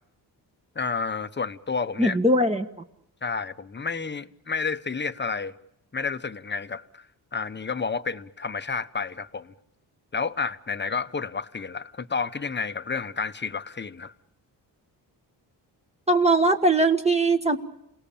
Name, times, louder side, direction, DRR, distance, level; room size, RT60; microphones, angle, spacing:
voice 1, 0.7-2.2 3.2-5.5 5.9-7.1 7.3-9.5 10.1-14.1, left 5 dB, 25° left, 1.0 m, -30 dB
voice 2, 2.0-2.7 16.1-17.6, right 2 dB, 15° right, 1.4 m, -20 dB
28.5 x 18.5 x 8.6 m
cardioid pair, 90°, 42 cm